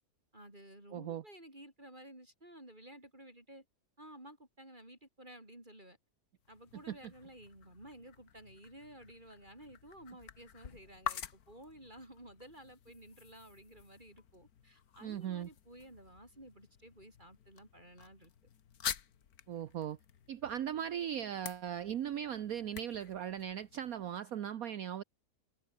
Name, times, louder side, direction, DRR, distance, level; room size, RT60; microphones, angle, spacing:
voice 1, 0.3-3.6 4.0-6.0 6.5-18.3, right 1 dB, 25° right, 6.3 m, -54 dB
voice 2, 0.9-1.2 6.9-7.0 15.0-15.5 19.5-20.0 20.3-25.0, right 9 dB, 65° right, 1.3 m, -38 dB
sound 1, 6.4-24.2, left 8 dB, 65° left, 1.7 m, -48 dB
omnidirectional pair, 1.8 m